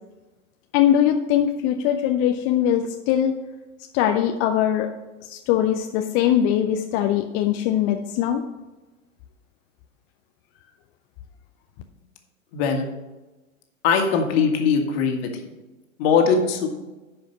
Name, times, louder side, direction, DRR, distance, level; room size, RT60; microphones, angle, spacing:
voice 1, 0.7-3.3 3.9-4.9 5.2-8.4, left 10 dB, 30° left, 5 dB, 0.5 m, -21 dB
voice 2, 12.5-12.9 13.8-15.3 16.0-16.7, left 6 dB, 45° left, 3 dB, 1.8 m, -20 dB
10.5 x 5.1 x 5.5 m, 1.1 s
figure-of-eight pair, 105°, 41 cm